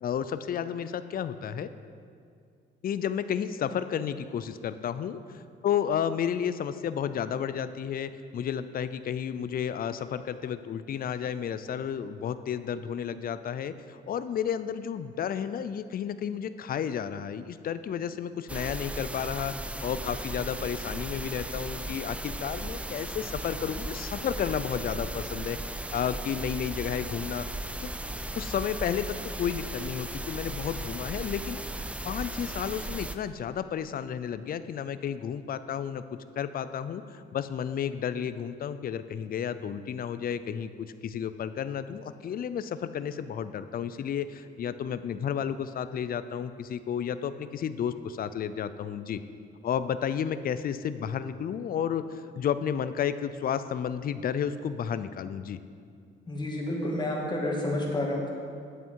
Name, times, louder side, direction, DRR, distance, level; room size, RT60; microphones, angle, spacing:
voice 1, 0.0-1.7 2.8-25.6 25.9-27.9 28.4-31.6 32.0-36.0 36.4-49.2 49.6-55.6, left 8 dB, 50° left, 12 dB, 0.5 m, -32 dB
sound 1, 18.5-33.2, right 1 dB, 5° right, 0.4 m, -36 dB
voice 2, 56.3-58.3, left 1 dB, 20° left, -2 dB, 2.2 m, -30 dB
10.0 x 7.9 x 4.6 m, 2.3 s
cardioid pair, 90°, 20 cm